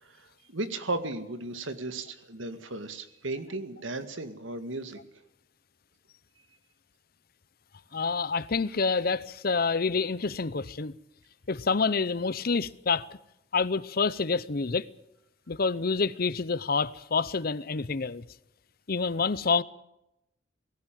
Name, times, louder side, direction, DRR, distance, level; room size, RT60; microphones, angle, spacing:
voice 1, 0.0-5.0, right 2 dB, 90° right, 2.1 m, -35 dB
voice 2, 7.9-10.9 11.5-13.1 13.5-14.9 15.5-18.2 18.9-19.6, left 4 dB, 50° left, 0.7 m, -27 dB
19.0 x 17.0 x 9.2 m
head